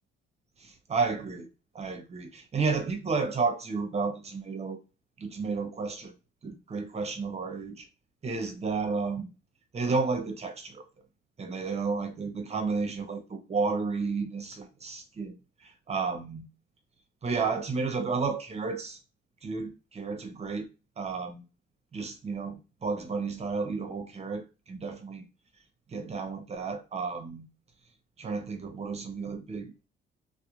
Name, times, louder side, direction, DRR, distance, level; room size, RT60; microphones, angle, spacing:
voice 1, 0.6-1.5 1.7-4.8 5.2-6.1 6.4-7.9 8.2-9.3 9.7-10.8 11.4-15.3 15.6-16.5 17.2-19.0 19.4-20.7 21.0-21.4 21.9-25.2 25.9-27.5 28.2-29.9, right 4 dB, 35° right, 0.7 m, -32 dB
2.4 x 2.0 x 3.0 m
cardioid pair, 90°, 20 cm